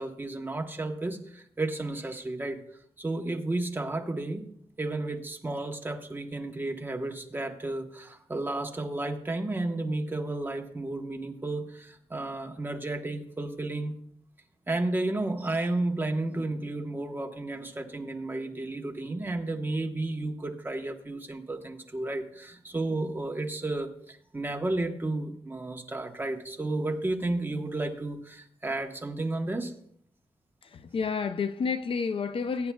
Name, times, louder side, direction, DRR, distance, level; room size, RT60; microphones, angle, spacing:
voice 1, 0.0-2.6 3.0-4.5 4.8-13.9 14.7-29.7, right 2 dB, 20° right, 1.1 m, -32 dB
voice 2, 30.7-32.7, left 5 dB, 55° left, 0.5 m, -30 dB
21.0 x 9.5 x 2.3 m
wide cardioid pair, 150°, 11 cm